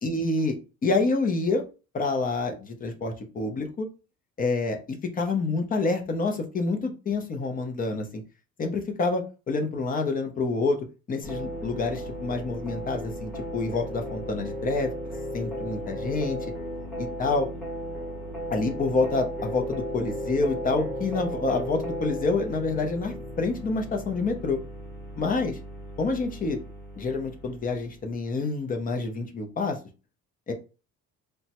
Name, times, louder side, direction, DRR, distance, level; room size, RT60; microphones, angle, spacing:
voice 1, 0.0-0.6 0.8-1.6 1.9-3.9 4.4-8.2 8.6-10.8 11.1-14.9 15.3-16.4 17.2-17.5 18.5-24.6 25.2-25.6 26.0-26.6 27.0-29.8 30.5-30.6, left 3 dB, 25° left, 4 dB, 0.5 m, -27 dB
sound 1, 11.2-28.0, equal, 5° left, 1.0 m, -35 dB
3.2 x 2.0 x 2.8 m, 0.32 s
cardioid pair, 160°, 31 cm